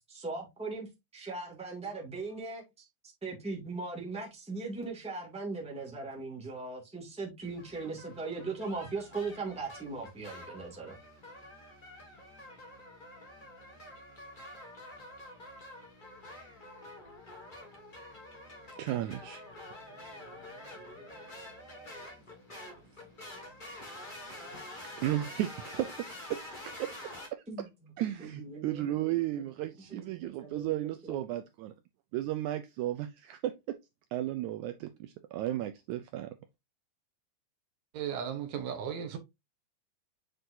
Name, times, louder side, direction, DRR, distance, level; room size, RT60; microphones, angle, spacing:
voice 1, 0.1-0.9 1.1-2.6 3.2-11.0 27.5-27.7 28.2-29.1 29.9-30.0 30.4-31.2, right 3 dB, ahead, 1.6 m, -39 dB
sound 1, 7.4-27.3, left 1 dB, 20° left, 1.3 m, -48 dB
voice 2, 18.8-19.4 25.0-27.7 28.0-31.7 32.1-33.8 34.1-36.3, right 13 dB, 90° right, 1.7 m, -34 dB
voice 3, 37.9-39.2, right 8 dB, 70° right, 1.9 m, -35 dB
7.8 x 4.4 x 2.7 m
omnidirectional pair, 4.0 m